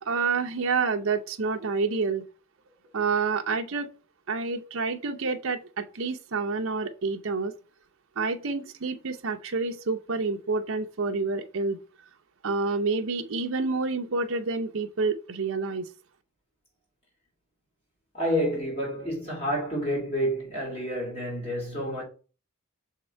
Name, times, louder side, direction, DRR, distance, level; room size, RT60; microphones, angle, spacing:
voice 1, 0.0-2.2 2.9-3.9 4.3-7.5 8.2-11.8 12.4-15.9, right 4 dB, 60° right, 0.6 m, -28 dB
voice 2, 18.1-22.0, equal, 25° left, 2.7 m, -29 dB
6.3 x 3.8 x 4.3 m
head